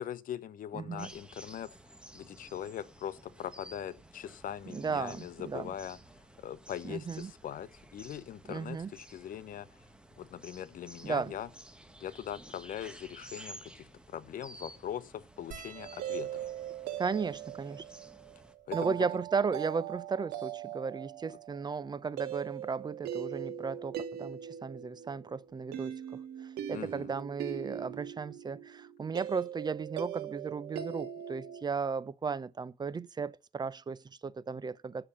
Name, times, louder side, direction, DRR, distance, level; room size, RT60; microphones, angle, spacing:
voice 1, 0.0-1.7 2.1-6.0 6.4-9.7 10.2-11.5 12.0-16.5 18.7-19.0 26.7-27.1, left 10 dB, 55° left, 1.0 m, -41 dB
voice 2, 0.7-1.1 4.7-5.7 6.8-7.3 8.5-8.9 11.0-11.3 17.0-17.9 18.7-26.0 26.4-35.1, right 5 dB, 25° right, 0.6 m, -35 dB
sound 1, 1.0-18.5, right 1 dB, 5° right, 1.4 m, -53 dB
sound 2, 15.5-20.1 20.9-21.0 21.1-21.3 22.6-22.8 24.3-24.4 24.6-24.8, right 7 dB, 50° right, 4.2 m, -54 dB
sound 3, 15.7-31.6, right 10 dB, 70° right, 1.7 m, -41 dB
9.4 x 6.9 x 7.2 m
cardioid pair, 110°, 17 cm